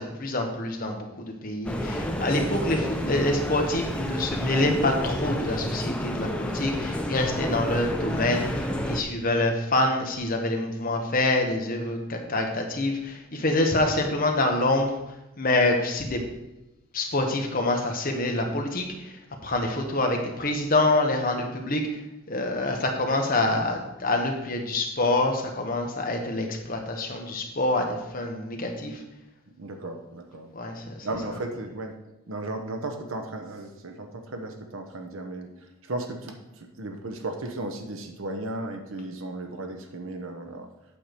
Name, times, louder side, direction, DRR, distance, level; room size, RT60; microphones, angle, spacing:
voice 1, 0.0-14.9 15.4-16.2 16.9-22.0 22.3-29.0 30.5-31.1, left 2 dB, 40° left, 2 dB, 1.3 m, -26 dB
sound 1, 1.6-9.0, equal, 5° left, 0.6 m, -30 dB
voice 2, 29.6-30.5 31.0-31.9 32.3-35.5 35.9-36.4 36.8-40.7, right 2 dB, 65° right, 4 dB, 1.0 m, -35 dB
8.6 x 4.7 x 6.8 m, 0.99 s
head